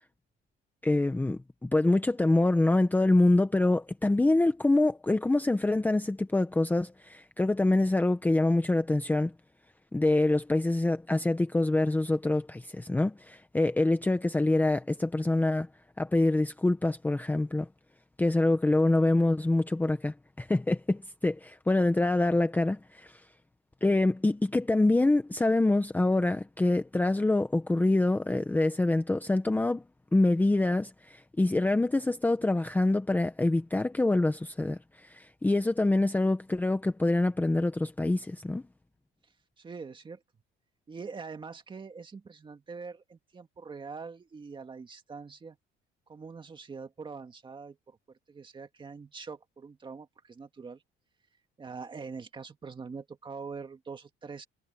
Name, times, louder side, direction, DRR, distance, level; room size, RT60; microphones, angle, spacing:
voice 1, 0.8-9.3 9.9-15.7 16.0-17.7 18.2-23.2 23.8-29.8 30.1-38.6, left 2 dB, 10° left, 0.9 m, -25 dB
voice 2, 39.6-40.2 40.9-45.6 46.1-48.0 48.3-50.8 51.6-54.5, right 5 dB, 25° right, 2.1 m, -43 dB
cardioid pair, 150°, 21 cm